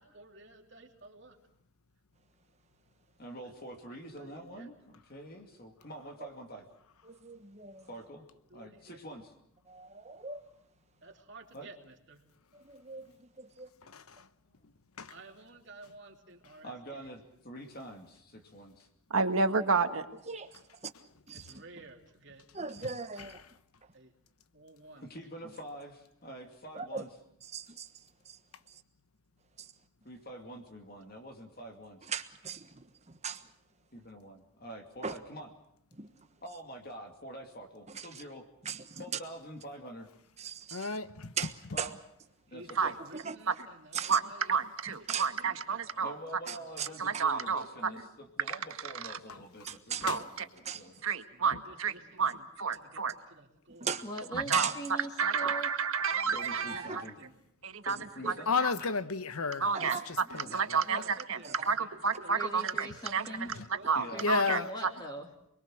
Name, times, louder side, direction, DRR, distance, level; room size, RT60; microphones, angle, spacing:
voice 1, 0.0-1.4 3.9-4.7 8.5-9.0 11.0-12.2 15.1-17.1 21.3-22.5 23.9-24.1 24.5-25.1 42.5-44.6 45.1-45.9 46.7-47.2 51.3-54.0 56.6-57.3 60.5-61.9 62.2-64.2, right 2 dB, 55° right, 3.0 m, -53 dB
voice 2, 3.2-6.6 7.9-8.3 8.5-9.3 11.5-11.7 14.6-14.7 16.6-18.9 25.0-27.1 30.0-32.1 33.9-35.5 36.4-38.5 39.0-40.1 41.7-41.9 42.5-43.0 46.0-51.0 56.3-57.2 57.8-59.0 63.9-64.3, right 1 dB, 45° left, 2.5 m, -46 dB
voice 3, 7.0-7.9 9.7-10.4 12.5-13.7 20.3-20.6 21.3-21.6 22.5-23.4 26.7-27.1 27.4-28.4 28.7-28.8 29.6-29.7 32.1-33.5 35.0-35.2 35.9-36.1 37.9-38.2 38.6-39.0 40.4-41.0 41.4-42.0 43.1-43.4 43.9-44.2 45.1-45.3 46.5-46.9 47.1-47.2 49.6-50.2 50.6-50.9 53.8-54.0 54.5-54.8 55.4-55.5 56.7-57.0 58.2-58.3 59.7-60.1 61.4-61.7, right 6 dB, 30° right, 1.3 m, -39 dB
voice 4, 19.1-20.1 42.8-42.9 43.5-43.6 44.1-44.2 44.5-46.1 47.0-47.9 48.9-49.2 50.0-50.5 51.0-51.9 52.2-53.1 54.5-54.7 55.2-57.0 57.6-58.0 58.3-58.4 58.6-58.7 59.6-61.4 61.7-62.9 63.1-63.3 63.9-64.6, right 5 dB, 70° right, 1.7 m, -30 dB
voice 5, 40.7-41.3 50.1-50.2 54.3-54.4 58.5-60.5 64.2-64.7, left 4 dB, 80° left, 1.0 m, -31 dB
voice 6, 54.0-55.7 60.4-60.5 60.9-61.0 62.3-63.5 64.1-65.3, right 1 dB, 20° left, 2.8 m, -41 dB
28.5 x 22.0 x 6.4 m
head